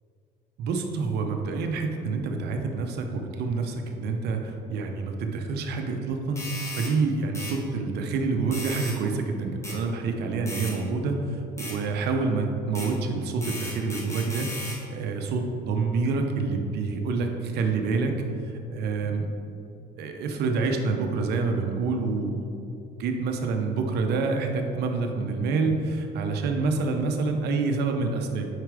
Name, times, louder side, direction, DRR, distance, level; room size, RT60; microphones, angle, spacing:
voice 1, 0.6-6.5 6.8-18.2 18.7-19.3 20.0-22.4 23.0-28.5, right 4 dB, 75° right, 4 dB, 0.7 m, -27 dB
sound 1, 6.4-6.9 7.3-7.6 8.5-9.0 9.6-9.8 10.5-10.7 11.6-11.8 12.7-12.9 13.4-14.8, left 1 dB, 15° left, 1.5 m, -36 dB
4.9 x 4.6 x 4.8 m, 2.7 s
cardioid pair, 110°, 17 cm